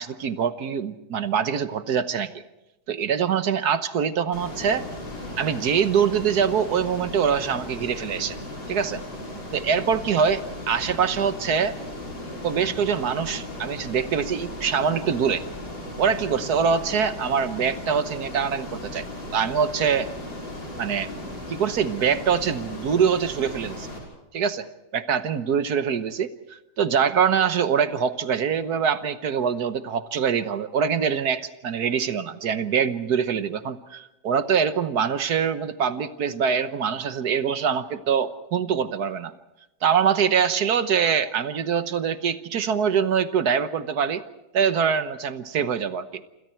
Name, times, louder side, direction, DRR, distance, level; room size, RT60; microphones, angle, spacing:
voice 1, 0.0-2.3 2.9-4.9 5.4-8.4 8.7-9.0 9.5-11.8 12.4-15.4 16.0-19.0 19.3-20.1 20.8-21.1 21.5-23.9 24.3-24.7 24.9-39.3 39.8-44.2 44.5-46.2, right 7 dB, 55° right, 11 dB, 1.3 m, -24 dB
Ocean, 4.3-24.0, left 1 dB, 55° left, 6.7 m, -36 dB
28.0 x 27.0 x 4.5 m, 0.94 s
omnidirectional pair, 2.4 m